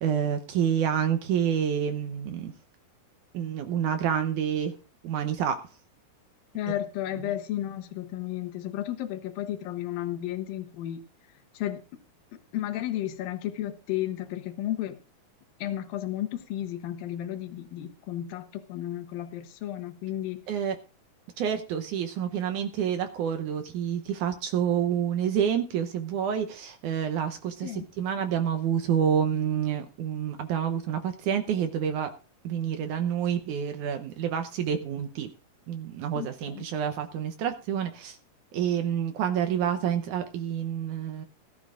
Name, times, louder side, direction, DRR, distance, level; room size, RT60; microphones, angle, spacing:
voice 1, 0.0-2.5 3.3-4.7 5.0-5.6 20.5-20.8 21.4-32.1 32.4-35.3 35.7-38.2 38.5-41.3, right 8 dB, 70° right, 7 dB, 2.1 m, -28 dB
voice 2, 6.5-11.0 11.5-11.8 12.5-15.0 15.6-20.4 27.6-27.9 36.2-36.6, left 13 dB, 85° left, 8 dB, 2.8 m, -33 dB
20.0 x 12.0 x 2.5 m, 0.34 s
omnidirectional pair, 4.0 m